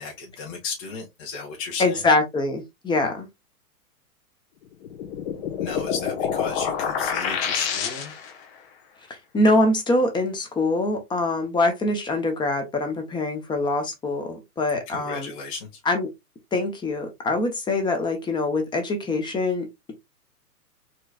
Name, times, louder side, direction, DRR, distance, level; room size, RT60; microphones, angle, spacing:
voice 1, 0.0-2.0 5.6-8.1 14.9-15.8, left 5 dB, 25° left, 1.3 m, -34 dB
voice 2, 1.8-3.3 9.1-15.3 15.9-16.1 16.5-19.9, left 2 dB, 10° left, 0.8 m, -24 dB
sound 1, 4.8-8.4, left 7 dB, 40° left, 1.1 m, -28 dB
4.5 x 3.2 x 2.3 m
hypercardioid pair, 120°, 46 cm